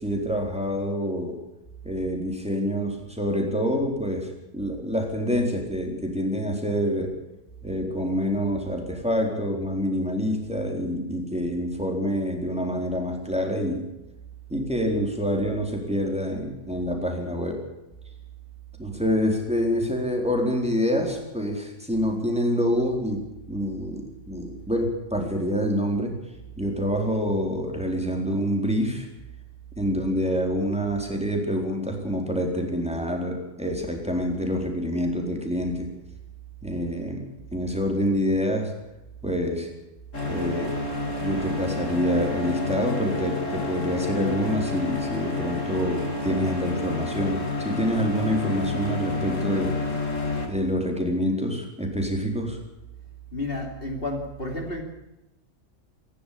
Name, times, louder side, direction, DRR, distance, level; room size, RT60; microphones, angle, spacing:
voice 1, 0.0-1.4 1.8-7.1 7.6-13.9 14.5-17.6 18.8-23.2 23.5-26.2 26.6-29.1 29.8-35.9 36.6-38.7 39.2-39.7 40.2-40.7 41.2-49.8 50.5-52.6, equal, 5° right, 2 dB, 4.1 m, -26 dB
sound 1, 40.1-50.5, left 2 dB, 65° left, 3.6 m, -29 dB
voice 2, 53.3-54.8, left 2 dB, 45° left, 2 dB, 3.0 m, -31 dB
26.0 x 12.0 x 8.6 m, 0.95 s
omnidirectional pair, 1.4 m